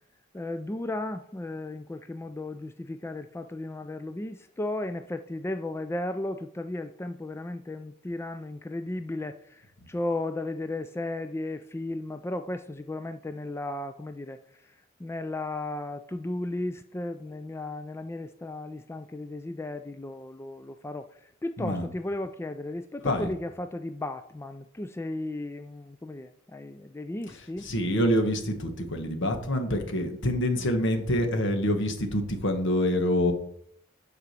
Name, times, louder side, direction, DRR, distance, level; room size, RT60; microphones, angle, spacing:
voice 1, 0.3-27.7, left 2 dB, 10° left, 9 dB, 0.3 m, -35 dB
voice 2, 21.6-21.9 23.0-23.3 27.3-33.3, left 1 dB, 60° left, 6 dB, 1.4 m, -26 dB
9.6 x 4.9 x 6.7 m, 0.70 s
head